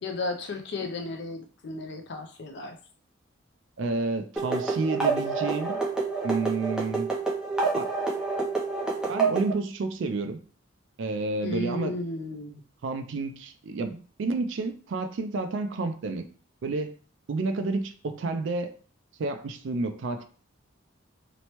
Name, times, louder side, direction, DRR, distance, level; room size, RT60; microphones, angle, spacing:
voice 1, 0.0-2.8 11.4-12.6, left 2 dB, 55° left, 5 dB, 0.4 m, -34 dB
voice 2, 3.8-5.8 6.2-7.1 7.7-7.9 9.1-10.4 11.0-11.9 12.8-16.3 16.6-17.0 17.3-18.8 19.2-20.3, right 3 dB, 65° right, 8 dB, 0.4 m, -30 dB
sound 1, 4.4-9.5, right 4 dB, 5° right, 0.5 m, -28 dB
3.0 x 2.1 x 2.9 m, 0.40 s
head